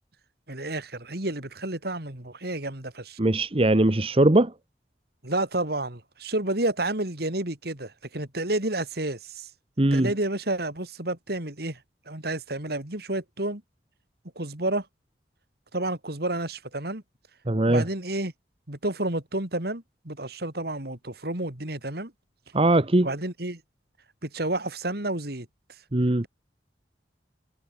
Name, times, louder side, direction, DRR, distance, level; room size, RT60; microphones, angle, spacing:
voice 1, 0.5-3.2 5.2-9.5 9.9-11.8 12.1-13.6 14.4-14.9 15.7-17.0 17.7-18.3 18.7-22.1 23.0-23.6 24.2-25.5, right 2 dB, 60° right, 3.8 m, -30 dB
voice 2, 3.2-4.5 9.8-10.1 17.5-17.8 22.5-23.1 25.9-26.2, right 1 dB, 35° right, 1.1 m, -20 dB
head